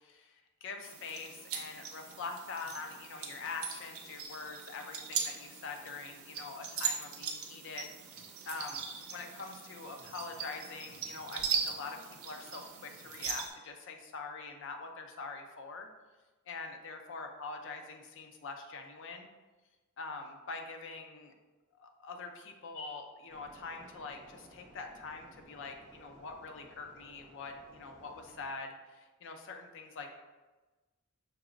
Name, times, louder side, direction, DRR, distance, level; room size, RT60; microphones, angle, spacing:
voice 1, 0.0-7.9 8.4-15.9 16.5-19.3 20.0-21.3 21.8-30.1, left 4 dB, 60° left, 4 dB, 0.5 m, -44 dB
sound 1, 0.8-13.5, right 6 dB, 75° right, 0.7 m, -40 dB
sound 2, 23.3-28.4, equal, 35° right, 0.9 m, -58 dB
6.0 x 2.9 x 2.5 m, 1.2 s
head